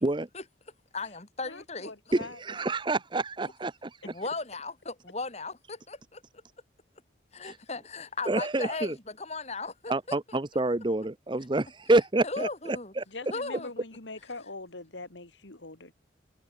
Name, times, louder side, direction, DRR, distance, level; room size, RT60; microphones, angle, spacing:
voice 1, 0.9-1.9 4.0-6.2 7.3-10.4 12.2-12.9 13.3-13.7, left 3 dB, 35° left, 3.0 m, -37 dB
voice 2, 1.4-2.4 13.1-15.9, left 2 dB, 70° left, 2.9 m, -43 dB
voice 3, 2.1-4.0 7.4-7.6 8.3-9.0 9.9-13.0, right 2 dB, 25° right, 0.7 m, -28 dB
head